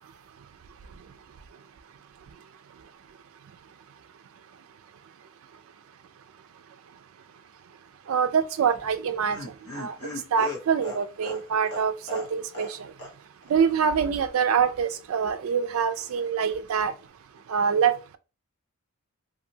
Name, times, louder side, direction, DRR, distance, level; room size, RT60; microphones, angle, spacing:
voice 1, 8.1-9.4 9.8-9.9 10.3-12.9 13.5-16.9 17.5-18.2, right 7 dB, 70° right, 0.3 m, -25 dB
Laughter, 8.7-12.7 13.0-13.1 13.4-13.5, left 2 dB, 85° left, 1.0 m, -38 dB
2.6 x 2.6 x 2.7 m
head